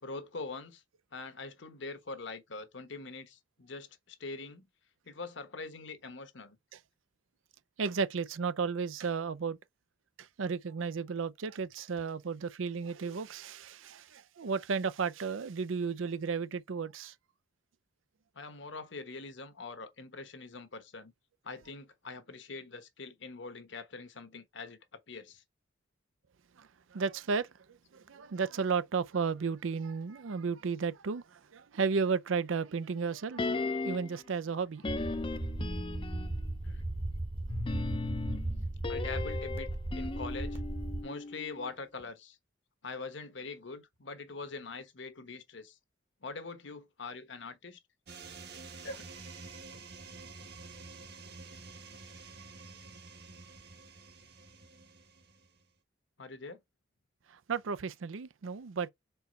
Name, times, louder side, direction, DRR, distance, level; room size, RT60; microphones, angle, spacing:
voice 1, 0.0-0.8 1.1-4.6 5.0-6.6 18.3-21.1 21.4-25.4 36.6-36.9 38.9-39.7 39.9-40.6 41.0-42.4 42.8-45.8 46.2-47.8 48.8-49.1 56.2-56.6, left 3 dB, 65° left, 1.1 m, -43 dB
voice 2, 7.8-9.6 10.4-17.1 26.6-27.5 27.9-33.5 33.8-34.8 57.5-58.9, right 5 dB, 80° right, 0.5 m, -33 dB
sound 1, 33.4-34.2 34.8-36.5 37.5-41.7 42.0-42.1, left 3 dB, 25° left, 0.5 m, -37 dB
sound 2, 34.9-41.0, right 1 dB, 30° right, 1.0 m, -36 dB
sound 3, 48.1-55.6, right 4 dB, 55° right, 1.3 m, -49 dB
4.5 x 4.0 x 5.2 m
head